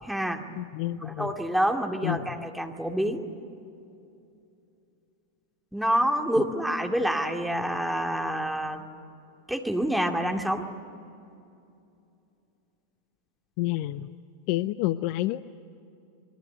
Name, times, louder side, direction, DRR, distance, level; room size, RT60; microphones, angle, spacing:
voice 1, 0.0-0.5 1.0-3.3 5.7-8.9 9.5-10.7, right 1 dB, ahead, 3 dB, 2.3 m, -27 dB
voice 2, 0.6-1.3 2.0-2.2 13.6-14.1 14.5-15.4, left 16 dB, 45° left, 15 dB, 0.6 m, -28 dB
26.0 x 22.5 x 9.3 m, 2.6 s
figure-of-eight pair, 90°, 0 cm